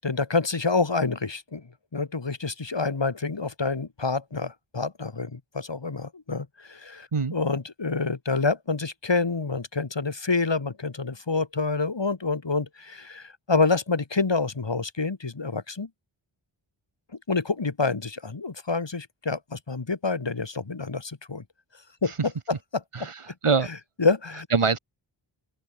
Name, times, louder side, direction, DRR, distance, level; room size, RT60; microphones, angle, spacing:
voice 1, 0.0-1.7 1.9-15.9 17.3-21.4 22.0-22.8 24.0-24.5, left 4 dB, 60° left, 7.7 m, -27 dB
voice 2, 22.9-23.7 24.5-24.8, right 5 dB, 85° right, 7.4 m, -24 dB
open air
wide cardioid pair, 80°, 49 cm